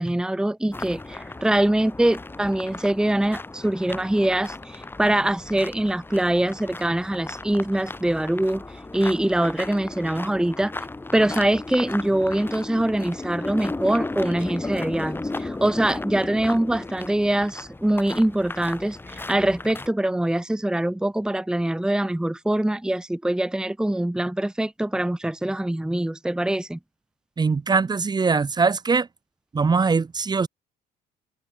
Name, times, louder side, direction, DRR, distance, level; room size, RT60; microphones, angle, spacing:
voice 1, 0.0-8.6 8.9-10.9 11.1-26.8, right 1 dB, 5° right, 1.3 m, -23 dB
sound 1, 0.7-19.9, left 2 dB, 10° left, 1.4 m, -35 dB
voice 2, 27.4-29.1 29.5-30.5, right 4 dB, 25° right, 1.4 m, -21 dB
cardioid pair, 110°, 17 cm